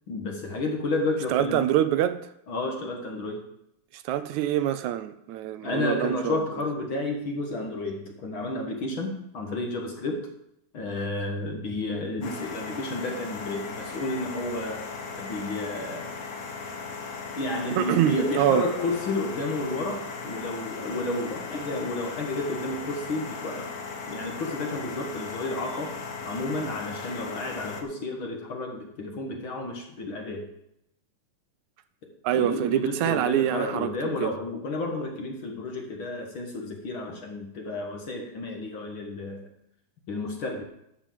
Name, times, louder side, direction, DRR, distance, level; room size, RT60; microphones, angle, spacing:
voice 1, 0.1-1.7 2.5-3.5 5.6-10.3 10.7-14.9 15.2-16.1 17.3-23.7 24.1-25.9 26.2-30.5 32.0-39.5 40.1-40.6, left 2 dB, 50° left, 1.7 m, -31 dB
voice 2, 1.3-2.2 3.9-6.5 17.7-18.7 32.2-33.9 34.2-34.3, right 11 dB, 80° right, 2.0 m, -25 dB
sound 1, 12.2-27.8, left 4 dB, 70° left, 0.8 m, -37 dB
12.0 x 5.1 x 7.6 m
omnidirectional pair, 3.4 m